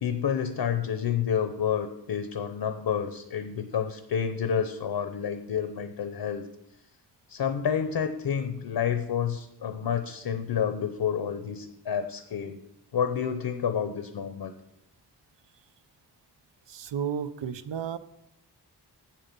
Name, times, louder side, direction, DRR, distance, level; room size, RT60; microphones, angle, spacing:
voice 1, 0.0-6.5 7.3-12.6 12.9-14.5, left 8 dB, 75° left, 8 dB, 0.8 m, -29 dB
voice 2, 16.7-18.0, right 8 dB, 90° right, 14 dB, 0.6 m, -32 dB
7.8 x 7.5 x 5.3 m, 0.83 s
wide cardioid pair, 115°, 41 cm